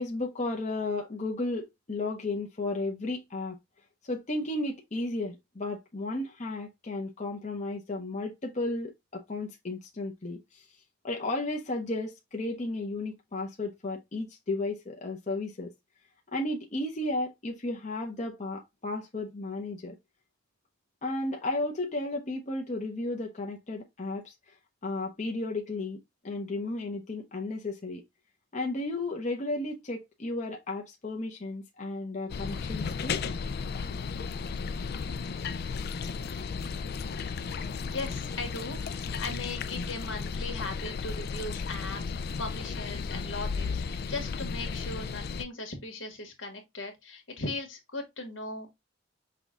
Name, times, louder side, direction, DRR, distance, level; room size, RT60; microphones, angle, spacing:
voice 1, 0.0-3.6 4.0-10.6 11.0-15.7 16.3-20.0 21.0-24.5 24.8-26.0 26.2-28.0 28.5-33.2, left 2 dB, 35° left, 0.8 m, -34 dB
sound 1, 32.3-45.4, left 5 dB, 55° left, 0.4 m, -34 dB
voice 2, 37.9-38.8 39.2-42.0 42.4-43.8 44.1-48.7, left 2 dB, 80° left, 1.7 m, -38 dB
6.1 x 2.4 x 3.6 m
head